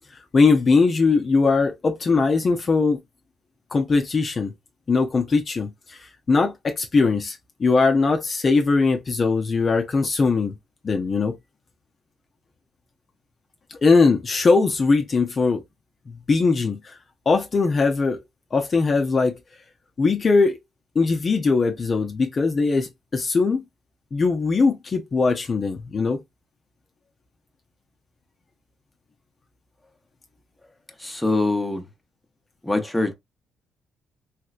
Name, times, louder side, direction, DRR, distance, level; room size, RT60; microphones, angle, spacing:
voice 1, 0.3-3.0 3.7-4.5 4.9-10.6 10.8-11.3 13.7-15.6 16.1-17.0 17.3-18.2 18.5-19.3 20.0-20.6 20.9-23.6 24.1-26.2, left 4 dB, 40° left, 0.6 m, -20 dB
voice 2, 31.0-31.8 32.6-33.1, left 2 dB, 5° left, 0.8 m, -23 dB
3.1 x 3.0 x 2.4 m
cardioid pair, 90°, 0 cm